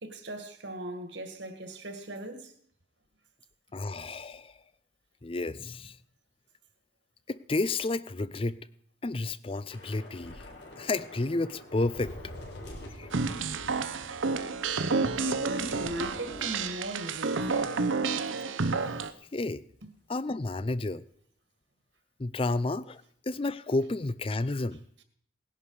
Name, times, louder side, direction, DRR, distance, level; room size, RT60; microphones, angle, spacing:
voice 1, 0.0-2.5 15.2-17.5, right 1 dB, 65° right, 1.9 m, -38 dB
voice 2, 3.7-4.5 5.2-5.9 7.3-8.6 9.0-10.4 10.8-12.2 13.0-13.1 19.3-19.6 20.1-21.0 22.2-24.8, left 2 dB, 30° left, 0.5 m, -31 dB
Thunder / Rain, 9.7-18.3 18.5-18.7 19.1-19.3, left 1 dB, 65° left, 4.2 m, -47 dB
sound 1, 13.1-19.1, right 4 dB, 80° right, 0.9 m, -30 dB
18.5 x 11.0 x 4.9 m
head